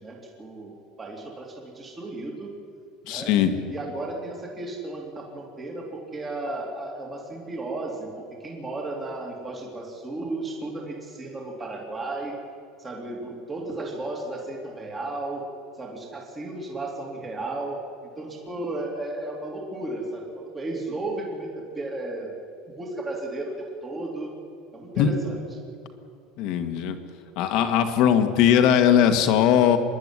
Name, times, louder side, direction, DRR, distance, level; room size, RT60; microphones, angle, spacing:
voice 1, 0.0-2.5 3.1-3.3 3.7-8.1 8.4-12.3 12.8-15.4 15.8-17.8 18.2-22.3 22.8-24.3 24.7-25.4, right 2 dB, 20° right, -1 dB, 2.9 m, -34 dB
voice 2, 3.1-3.5 25.0-25.1 26.4-27.0 27.4-29.8, left 9 dB, 60° left, 7 dB, 1.8 m, -19 dB
25.5 x 10.5 x 9.9 m, 2.4 s
supercardioid pair, 145°, 0 cm